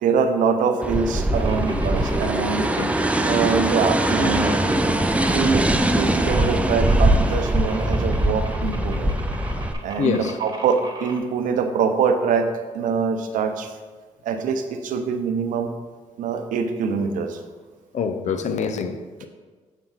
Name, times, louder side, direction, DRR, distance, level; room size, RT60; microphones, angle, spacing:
voice 1, 0.0-2.6 3.2-4.5 5.3-5.6 6.0-9.1 9.8-12.5 12.7-13.7 14.3-15.7 16.2-17.4, right 6 dB, 75° right, 0.7 m, -24 dB
sound 1, 0.8-9.7, right 1 dB, 10° right, 0.5 m, -21 dB
Radioactive Machine, 1.3-11.2, right 2 dB, 25° right, 1.4 m, -38 dB
voice 2, 10.0-10.4 17.9-19.3, left 6 dB, 60° left, 0.6 m, -26 dB
7.2 x 4.4 x 3.9 m
supercardioid pair, 65°, 14 cm